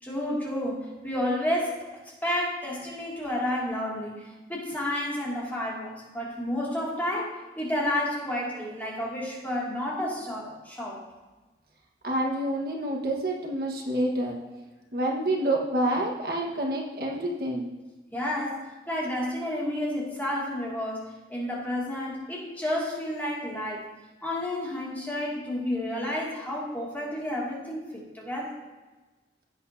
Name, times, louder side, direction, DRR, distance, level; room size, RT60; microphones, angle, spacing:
voice 1, 0.0-1.9 2.2-11.0 18.1-23.9 24.2-28.6, left 1 dB, 10° left, -5 dB, 2.4 m, -31 dB
voice 2, 12.0-14.4 14.9-17.7, right 1 dB, 55° right, 0 dB, 1.4 m, -28 dB
16.5 x 8.3 x 2.8 m, 1.2 s
head